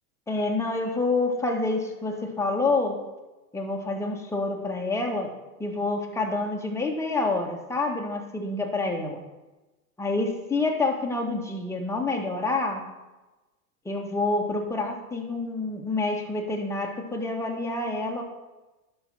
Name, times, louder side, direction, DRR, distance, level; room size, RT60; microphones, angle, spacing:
voice 1, 0.3-3.0 3.5-5.3 5.6-9.2 10.0-12.8 13.8-18.2, left 3 dB, 5° left, 0 dB, 1.5 m, -27 dB
11.0 x 5.4 x 6.2 m, 1.1 s
hypercardioid pair, 125°, 46 cm